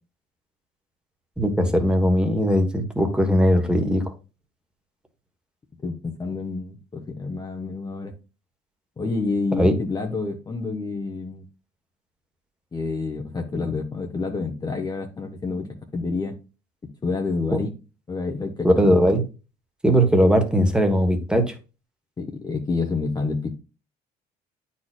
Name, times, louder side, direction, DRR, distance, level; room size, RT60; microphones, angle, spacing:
voice 1, 1.4-4.0 9.5-9.8 18.6-19.2 19.8-21.5, equal, 5° right, 1.2 m, -19 dB
voice 2, 5.8-8.1 9.0-11.4 12.7-16.3 17.0-17.7 18.1-19.0 22.2-23.5, left 3 dB, 25° left, 0.9 m, -28 dB
9.4 x 4.3 x 2.3 m
cardioid pair, 110°, 17 cm